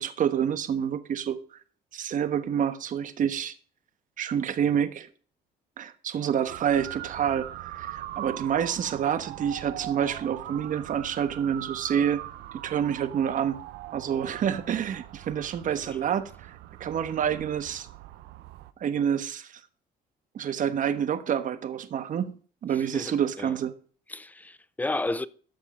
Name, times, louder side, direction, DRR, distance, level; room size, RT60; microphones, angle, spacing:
voice 1, 0.0-1.4 1.9-3.5 4.2-5.1 5.8-12.2 12.6-13.6 13.9-16.3 16.8-17.9 18.8-19.6 20.3-22.4 22.6-23.7, right 8 dB, 50° right, 1.2 m, -28 dB
Motor vehicle (road) / Siren, 6.5-18.7, right 14 dB, 85° right, 0.9 m, -41 dB
voice 2, 22.9-23.5 24.1-25.3, left 2 dB, 10° left, 0.6 m, -32 dB
13.0 x 6.6 x 5.0 m
cardioid pair, 110°, 17 cm